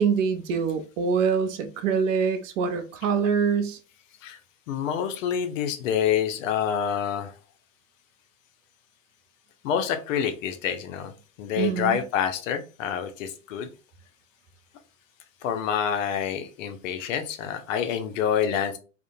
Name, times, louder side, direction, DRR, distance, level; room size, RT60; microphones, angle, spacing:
voice 1, 0.0-3.8 11.6-12.0, right 6 dB, 65° right, 0.6 m, -24 dB
voice 2, 4.7-7.3 9.6-11.1 11.4-13.7 15.4-18.8, left 8 dB, 65° left, 0.6 m, -27 dB
2.4 x 2.1 x 2.6 m
hypercardioid pair, 100°, 41 cm